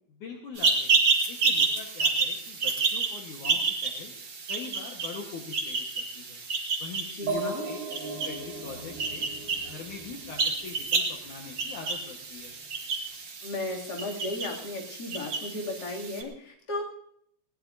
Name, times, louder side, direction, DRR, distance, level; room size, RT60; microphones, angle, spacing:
voice 1, 0.1-4.1 4.5-6.4 6.8-7.8 8.2-9.3 9.7-12.6, left 5 dB, 75° left, 1 dB, 1.7 m, -42 dB
sound 1, 0.5-16.2, right 4 dB, 80° right, 1.0 m, -30 dB
voice 2, 7.1-7.7 13.4-16.8, left 2 dB, 30° left, -2 dB, 1.9 m, -35 dB
sound 2, 7.3-10.9, right 4 dB, 55° right, 7.1 m, -37 dB
20.5 x 18.5 x 2.7 m, 0.69 s
omnidirectional pair, 5.8 m